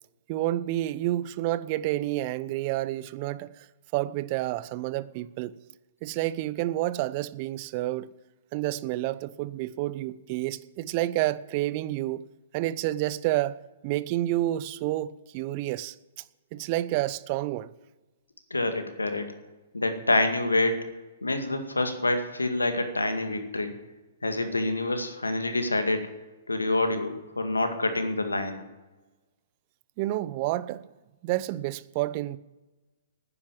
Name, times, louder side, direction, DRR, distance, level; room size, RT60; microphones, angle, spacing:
voice 1, 0.3-3.7 3.9-5.6 6.0-8.1 8.5-12.2 12.5-13.6 13.8-15.9 16.5-17.7 30.0-30.9 31.2-32.4, right 15 dB, 40° right, 0.6 m, -29 dB
voice 2, 18.5-19.3 19.7-20.9 21.2-23.7 24.2-26.1 26.5-28.6, left 2 dB, 90° left, 2.0 m, -27 dB
11.0 x 10.0 x 9.2 m
figure-of-eight pair, 120°, 0 cm